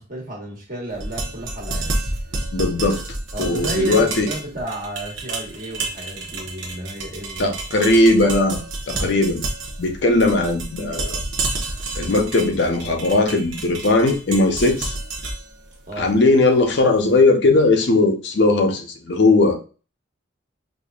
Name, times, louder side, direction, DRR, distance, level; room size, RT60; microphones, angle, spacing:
voice 1, 0.0-2.0 3.3-7.6 8.9-9.2 10.1-10.2 15.9-16.1, right 1 dB, 45° right, -2 dB, 1.3 m, -32 dB
sound 1, 0.9-17.0, right 2 dB, 75° right, 0.9 m, -30 dB
voice 2, 2.5-3.0 3.4-4.3 7.4-8.6 8.9-9.4 9.8-11.2 12.0-14.9 16.0-19.6, left 2 dB, 60° left, 4 dB, 0.5 m, -18 dB
4.9 x 2.5 x 2.3 m, 0.35 s
head